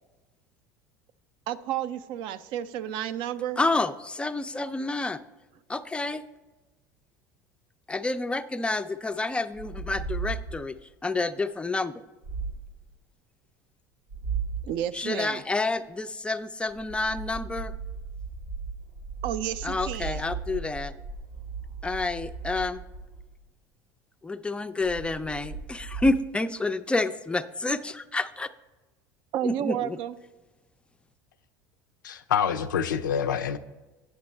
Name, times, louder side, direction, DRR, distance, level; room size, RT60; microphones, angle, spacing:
voice 1, 1.5-3.6 14.6-15.4 19.2-20.2 29.3-30.2, right 11 dB, 55° right, 13 dB, 0.4 m, -31 dB
voice 2, 3.6-5.2 5.7-6.2 7.9-10.8 11.0-12.0 14.9-17.7 19.6-20.9 21.8-22.8 24.2-28.5 29.4-30.0, left 2 dB, 10° left, 12 dB, 0.3 m, -29 dB
sound 1, 9.5-10.8 12.2-12.8 14.1-14.8 16.7-23.4 24.8-26.1, right 5 dB, 90° right, 0.8 m, -36 dB
voice 3, 32.0-33.6, left 8 dB, 85° left, 10 dB, 0.4 m, -26 dB
8.8 x 6.0 x 3.2 m, 1.1 s
hypercardioid pair, 80°, 10 cm